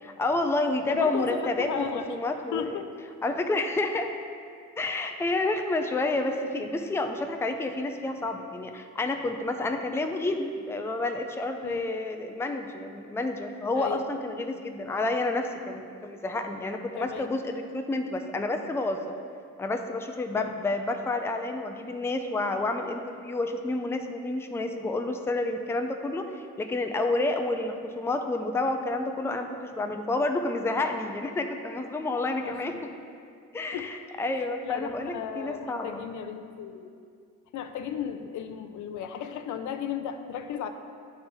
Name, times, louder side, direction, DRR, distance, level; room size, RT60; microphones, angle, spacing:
voice 1, 0.0-2.8 3.2-4.1 4.8-19.0 19.6-32.8 33.5-36.0, left 2 dB, 10° left, 5 dB, 0.4 m, -29 dB
voice 2, 0.9-2.1 2.5-2.9 11.6-11.8 13.7-14.1 17.0-17.3 20.3-20.5 32.4-32.8 33.7-33.9 34.6-37.0 37.5-40.7, left 8 dB, 75° left, 7 dB, 0.5 m, -35 dB
9.8 x 3.4 x 4.4 m, 2.3 s
cardioid pair, 90°, 30 cm